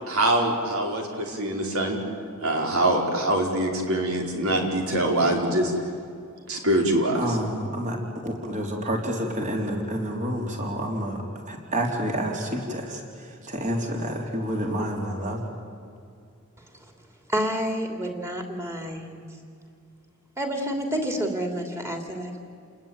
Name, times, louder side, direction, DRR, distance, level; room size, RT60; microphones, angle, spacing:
voice 1, 0.1-2.0 2.4-5.7 6.5-7.4, right 1 dB, 90° right, 1 dB, 4.7 m, -24 dB
voice 2, 7.1-8.0 8.2-13.0 13.4-15.4, equal, 35° right, 1 dB, 3.8 m, -29 dB
voice 3, 17.3-19.2 20.4-22.4, equal, 15° right, 3 dB, 3.1 m, -29 dB
29.5 x 20.0 x 9.1 m, 2.4 s
head